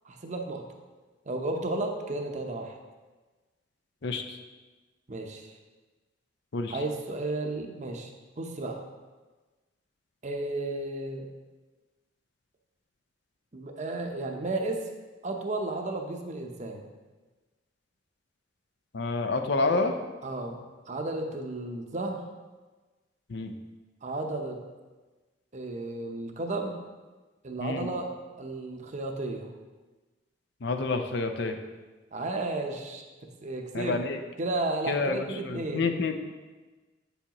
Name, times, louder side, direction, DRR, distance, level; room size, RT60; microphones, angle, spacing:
voice 1, 0.0-0.7 1.3-2.8 5.1-5.5 6.7-8.8 10.2-11.3 13.5-14.8 15.2-16.9 20.2-20.6 20.9-22.2 24.0-24.6 25.5-26.8 27.4-28.1 28.4-29.5 32.1-33.0 33.4-34.0 34.4-35.9, right 2 dB, 40° right, 3 dB, 0.7 m, -33 dB
voice 2, 18.9-20.0 23.3-23.5 27.6-27.9 30.6-31.6 33.7-34.2 34.9-36.1, left 3 dB, 60° left, 6 dB, 0.6 m, -28 dB
8.4 x 7.1 x 3.0 m, 1.3 s
head